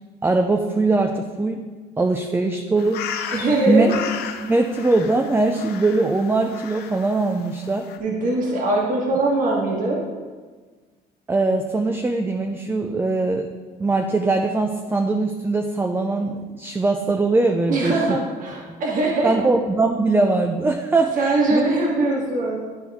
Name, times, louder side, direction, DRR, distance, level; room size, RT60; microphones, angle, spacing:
voice 1, 0.2-1.6 2.0-3.0 3.7-3.9 4.4-7.9 11.3-13.5 13.8-18.0 18.7-18.8 19.2-21.7, right 3 dB, 15° right, 3 dB, 0.5 m, -21 dB
sound 1, 2.8-8.0, left 7 dB, 75° left, 0.6 m, -35 dB
voice 2, 3.3-3.9 8.0-10.0 17.7-19.3 21.2-22.6, right 2 dB, 55° right, -3 dB, 1.7 m, -21 dB
11.5 x 4.4 x 3.5 m, 1.4 s
cardioid pair, 110°, 17 cm